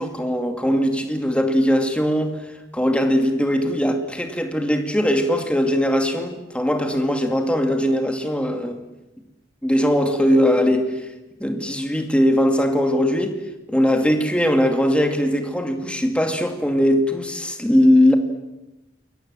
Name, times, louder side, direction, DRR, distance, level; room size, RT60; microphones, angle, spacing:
voice 1, 0.0-2.4 2.7-8.8 9.6-11.1 11.4-13.4 13.7-18.1, equal, 5° left, 2.4 m, -20 dB
29.0 x 22.5 x 7.7 m
head